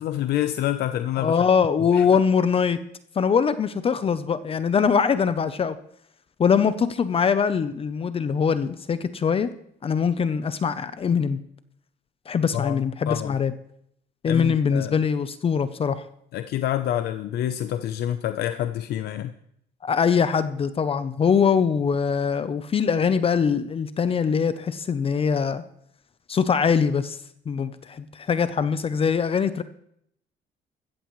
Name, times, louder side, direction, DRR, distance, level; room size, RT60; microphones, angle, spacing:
voice 1, 0.0-1.4 1.9-2.1 12.5-13.4 14.2-15.0 16.3-19.3, left 12 dB, 70° left, 10 dB, 0.7 m, -27 dB
voice 2, 1.2-2.8 3.2-5.8 6.4-9.5 9.8-11.4 12.3-13.5 14.2-16.0 19.8-25.6 26.3-27.2 27.5-29.6, left 6 dB, 35° left, 13 dB, 0.7 m, -22 dB
15.0 x 14.0 x 3.2 m, 0.71 s
cardioid pair, 110°, 17 cm